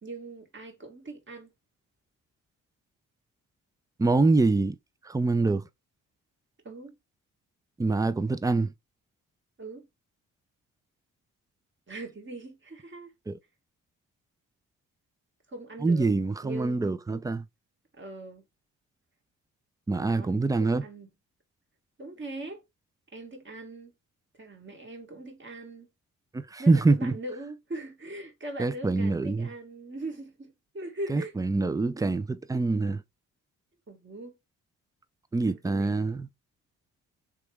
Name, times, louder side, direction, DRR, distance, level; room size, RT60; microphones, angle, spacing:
voice 1, 0.0-1.5 6.7-7.0 9.6-9.9 11.9-13.1 15.5-16.1 16.4-16.8 18.0-18.4 20.0-21.1 22.0-22.6 23.1-23.9 24.4-25.9 26.6-31.3 33.9-34.3 35.5-36.2, right 2 dB, 35° right, 1.8 m, -41 dB
voice 2, 4.0-4.8 5.1-5.6 7.8-8.7 13.3-13.4 15.8-17.4 19.9-20.8 26.3-27.1 28.6-29.5 31.1-33.0 35.3-36.3, right 3 dB, 10° right, 0.4 m, -25 dB
3.5 x 3.0 x 3.2 m
supercardioid pair, 65°, 34 cm